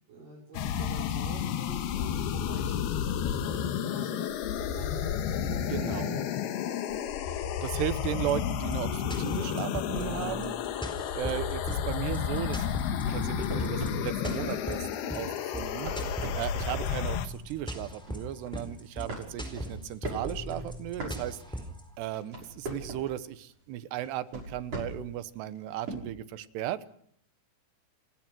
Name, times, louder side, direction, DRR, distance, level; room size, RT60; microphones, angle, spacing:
voice 1, 0.1-6.3, right 3 dB, 55° right, -4 dB, 6.7 m, -47 dB
sound 1, 0.5-17.3, left 9 dB, 75° left, 3.1 m, -32 dB
voice 2, 5.7-6.2 7.6-10.5 11.1-12.6 13.1-15.9 16.4-21.4 22.0-26.9, right 12 dB, 90° right, 13 dB, 3.2 m, -36 dB
sound 2, 8.2-21.8, equal, ahead, 3.9 m, -39 dB
sound 3, 12.8-14.5 15.5-17.0 17.4-17.6 18.0-18.7 19.1-21.7 22.0-23.2 24.0-25.1 25.9-26.0, right 1 dB, 35° right, 7.2 m, -39 dB
29.5 x 16.5 x 6.2 m, 0.67 s
omnidirectional pair, 4.7 m